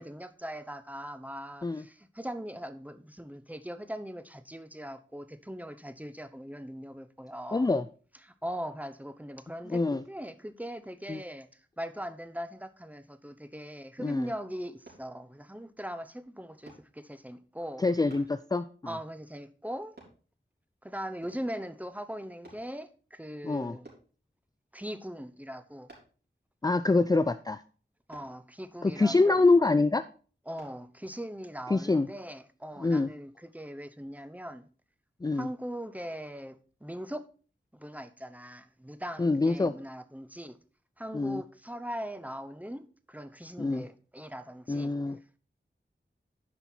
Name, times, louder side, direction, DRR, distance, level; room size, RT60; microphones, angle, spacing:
voice 1, 0.0-7.7 8.2-17.8 18.9-19.9 20.8-23.9 24.7-25.9 28.1-29.4 30.5-34.7 35.3-37.2 37.7-40.6 41.0-44.9, equal, 10° right, 0.8 m, -40 dB
voice 2, 7.5-7.8 9.7-10.0 11.1-11.2 14.0-14.2 17.8-18.6 23.4-23.8 26.6-27.6 28.8-30.0 31.7-32.1 32.8-33.1 35.2-35.5 39.2-39.7 41.1-41.4 43.6-43.8 44.7-45.2, left 3 dB, 20° left, 0.4 m, -25 dB
sound 1, 14.9-15.1 16.7-16.9 18.1-18.3 20.0-20.2 21.2-21.5 22.4-22.7 23.8-24.1 25.9-26.2 28.1-28.3 30.6-30.8 31.3-31.5, right 2 dB, 55° right, 4.1 m, -52 dB
10.0 x 5.5 x 4.4 m
wide cardioid pair, 50°, 20 cm